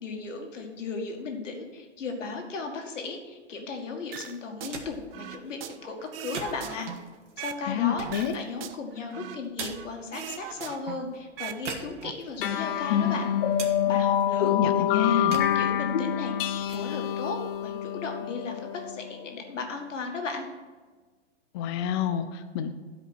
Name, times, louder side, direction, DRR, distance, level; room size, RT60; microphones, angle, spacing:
voice 1, 0.0-6.9 7.4-8.1 8.3-13.3 13.9-20.5, left 4 dB, 85° left, 3 dB, 2.0 m, -36 dB
sound 1, 4.1-4.8 5.1-7.6 8.0-9.9 10.1-11.6 11.9-12.1, right 10 dB, 50° right, 0.7 m, -40 dB
sound 2, 4.5-18.4, right 4 dB, 80° right, 1.8 m, -45 dB
voice 2, 7.7-8.3 14.5-15.4 21.5-22.7, left 8 dB, 25° left, 8 dB, 0.3 m, -28 dB
sound 3, 12.4-19.3, left 10 dB, 45° left, 0.8 m, -26 dB
11.0 x 5.0 x 6.1 m, 1.4 s
hypercardioid pair, 140°, 36 cm